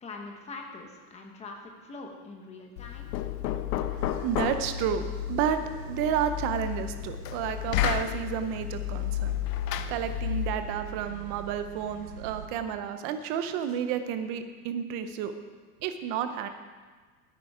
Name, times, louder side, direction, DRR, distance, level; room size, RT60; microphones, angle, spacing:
voice 1, 0.0-3.1, left 3 dB, 15° left, 2 dB, 1.1 m, -43 dB
Knock, 2.8-10.7, left 14 dB, 80° left, 0.9 m, -32 dB
voice 2, 3.9-9.3 9.9-15.3 15.8-16.5, right 8 dB, 30° right, 9 dB, 0.6 m, -31 dB
sound 1, 4.0-12.5, right 10 dB, 75° right, 1.6 m, -44 dB
13.0 x 9.8 x 4.9 m, 1.4 s
supercardioid pair, 170°, 48 cm